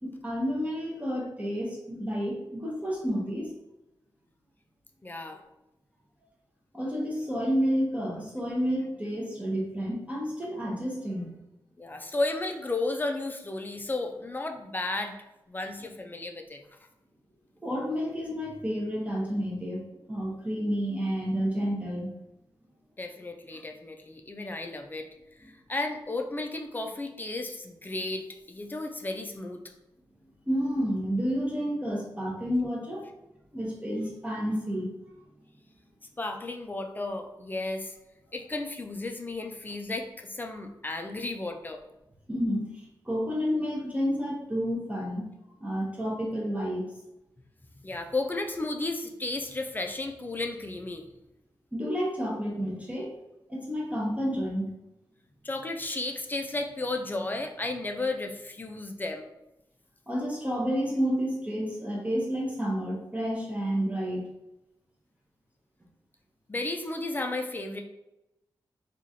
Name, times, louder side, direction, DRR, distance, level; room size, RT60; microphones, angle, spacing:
voice 1, 0.0-3.5 6.7-11.4 17.6-19.8 20.1-22.1 30.5-33.1 33.5-34.9 42.3-45.3 45.6-46.9 51.7-53.1 53.5-54.6 60.1-64.3, equal, 15° right, -3 dB, 0.7 m, -30 dB
voice 2, 5.0-5.4 11.8-15.2 15.5-16.6 23.0-25.1 25.4-29.6 36.2-37.9 38.3-41.8 47.8-51.1 55.4-59.3 66.5-67.8, left 2 dB, 25° left, 4 dB, 0.4 m, -33 dB
3.0 x 2.4 x 2.6 m, 0.93 s
cardioid pair, 80°, 8 cm